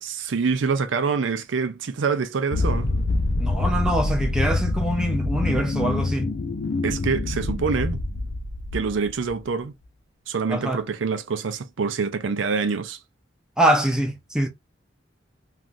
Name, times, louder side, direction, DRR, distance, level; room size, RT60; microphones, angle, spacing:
voice 1, 0.0-2.9 6.8-8.0 8.7-9.7 10.3-13.0, right 5 dB, 85° right, 0.5 m, -26 dB
sound 1, 2.5-9.3, left 2 dB, 60° left, 0.5 m, -25 dB
voice 2, 3.4-6.3 10.5-10.8 13.6-14.5, right 1 dB, 5° right, 0.6 m, -24 dB
3.2 x 2.4 x 2.5 m
head